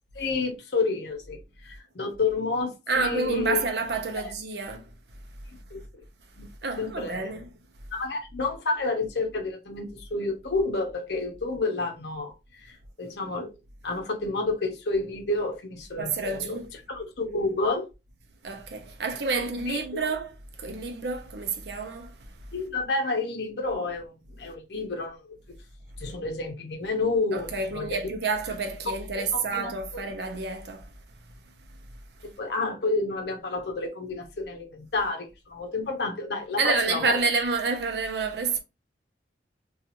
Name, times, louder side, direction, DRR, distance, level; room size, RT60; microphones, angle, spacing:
voice 1, 0.1-3.6 5.7-5.8 6.4-6.5 6.8-7.3 7.9-12.3 12.6-12.7 13.0-13.5 13.8-16.6 16.9-17.9 19.3-20.1 22.5-25.4 26.0-28.0 28.9-30.0 32.2-37.2, left 3 dB, 65° left, 0.7 m, -30 dB
voice 2, 2.9-4.9 6.4-7.5 16.0-16.7 18.4-22.5 27.3-32.3 36.6-38.6, right 4 dB, 65° right, 0.6 m, -29 dB
2.8 x 2.4 x 2.5 m
head